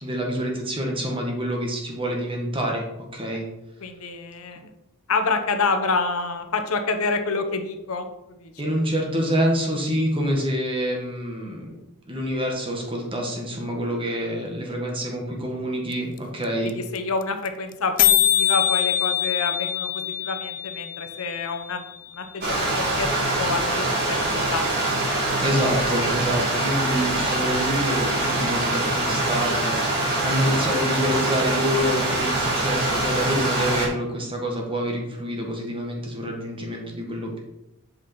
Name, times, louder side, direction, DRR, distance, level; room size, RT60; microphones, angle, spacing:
voice 1, 0.0-3.4 8.6-11.7 12.1-16.7 25.4-37.4, equal, 25° right, 0 dB, 1.6 m, -27 dB
voice 2, 3.8-4.7 5.1-8.7 16.6-21.8 22.1-24.7, left 4 dB, 75° left, 6 dB, 0.9 m, -28 dB
sound 1, 15.9-16.2 16.4-16.7 16.9-17.0 17.2-17.5 17.7-17.8 18.0-22.0, left 13 dB, 40° left, 0.4 m, -23 dB
Stream, 22.4-33.9, right 2 dB, 50° right, 2.5 m, -24 dB
8.1 x 5.4 x 4.4 m, 0.91 s
head